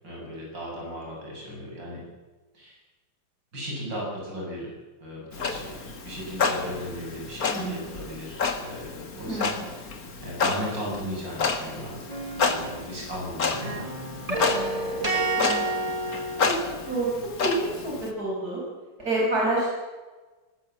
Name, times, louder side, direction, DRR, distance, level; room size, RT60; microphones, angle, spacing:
voice 1, 0.0-2.0 2.5-2.8 3.5-4.7 5.0-9.9 10.2-12.1 12.4-13.8, equal, 70° right, -3 dB, 8.5 m, -36 dB
Clock, 5.3-18.1, left 4 dB, 50° left, 2.3 m, -30 dB
voice 2, 7.5-7.8 9.3-9.7 15.4-15.8 16.4-17.1 17.4-18.6 19.0-19.7, right 2 dB, 50° right, -4 dB, 7.3 m, -28 dB
sound 1, 12.1-13.2 13.5-17.0, right 2 dB, 20° right, 3.1 m, -30 dB
21.0 x 20.0 x 7.7 m, 1.3 s
omnidirectional pair, 2.0 m